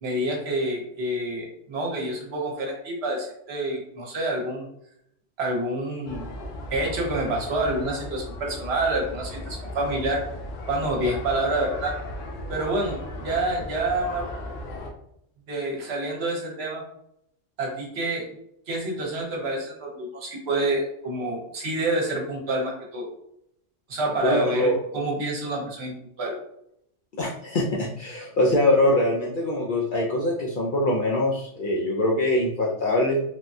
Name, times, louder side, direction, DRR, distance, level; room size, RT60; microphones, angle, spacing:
voice 1, 0.0-4.7 5.4-6.3 6.7-10.2 10.7-11.9 12.5-14.2 15.5-16.8 17.6-18.3 18.7-23.1 23.9-26.3, right 1 dB, 60° right, 0 dB, 1.0 m, -28 dB
sound 1, 6.1-14.9, left 1 dB, 85° left, 0.9 m, -36 dB
voice 2, 24.2-24.8 27.2-33.2, left 1 dB, 60° left, -3 dB, 0.5 m, -23 dB
3.4 x 2.2 x 2.6 m, 0.75 s
omnidirectional pair, 1.3 m